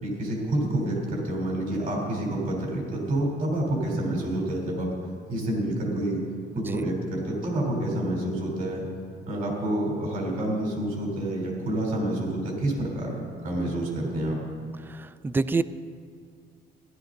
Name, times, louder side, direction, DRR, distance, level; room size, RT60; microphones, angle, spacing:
voice 1, 0.0-4.9 5.3-6.2 6.5-8.9 9.3-13.2 13.4-14.4, right 1 dB, 55° right, -1 dB, 3.6 m, -28 dB
voice 2, 6.6-6.9 14.8-15.6, right 3 dB, 10° right, 15 dB, 0.3 m, -28 dB
15.5 x 11.5 x 3.9 m, 2.1 s
cardioid pair, 120°, 17 cm